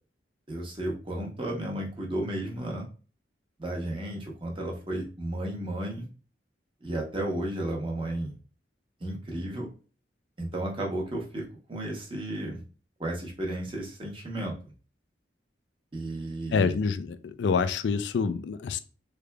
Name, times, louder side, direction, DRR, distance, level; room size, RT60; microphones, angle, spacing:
voice 1, 0.5-2.9 3.6-6.1 6.8-8.3 9.0-9.7 10.4-12.6 13.0-14.5 15.9-16.8, right 1 dB, 30° right, 0.8 m, -33 dB
voice 2, 16.5-18.8, left 5 dB, 75° left, 0.3 m, -27 dB
3.6 x 3.3 x 2.2 m
head